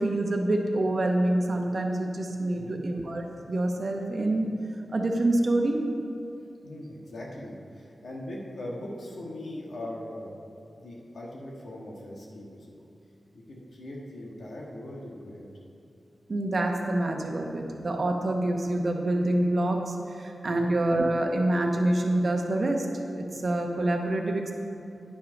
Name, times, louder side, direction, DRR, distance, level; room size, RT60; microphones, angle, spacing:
voice 1, 0.0-4.5 4.9-5.8 16.3-22.9 23.2-24.5, right 1 dB, 50° right, 2 dB, 0.9 m, -26 dB
voice 2, 2.5-2.9 6.6-10.3 10.8-12.8 13.3-15.4 20.4-20.7, left 1 dB, 85° left, -3 dB, 1.4 m, -40 dB
10.0 x 5.7 x 5.2 m, 2.6 s
wide cardioid pair, 130°, 0 cm